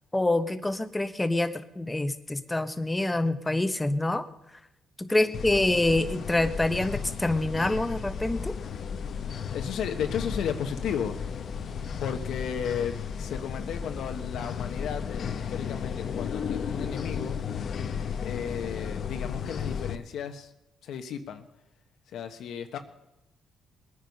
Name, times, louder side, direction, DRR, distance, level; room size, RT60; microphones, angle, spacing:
voice 1, 0.1-4.2 5.0-8.6, left 2 dB, 15° left, 10 dB, 1.1 m, -26 dB
sound 1, 5.3-20.0, left 7 dB, 55° left, 0.9 m, -34 dB
voice 2, 9.5-11.2 12.0-17.4 18.2-20.5 20.8-21.5 22.1-22.8, left 8 dB, 75° left, 6 dB, 1.2 m, -34 dB
20.5 x 9.6 x 5.4 m, 0.88 s
cardioid pair, 90°, 0 cm